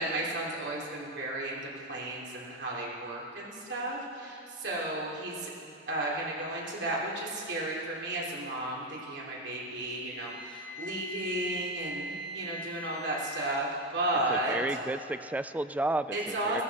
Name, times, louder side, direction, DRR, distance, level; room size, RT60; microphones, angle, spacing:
voice 1, 0.0-14.6 16.1-16.6, right 1 dB, 70° right, -4 dB, 3.3 m, -34 dB
Wind instrument woodwind instrument, 10.1-13.6, equal, 60° left, 2.9 m, -41 dB
voice 2, 14.3-16.6, right 2 dB, 10° right, 12 dB, 0.3 m, -32 dB
16.0 x 14.0 x 4.2 m, 2.3 s
head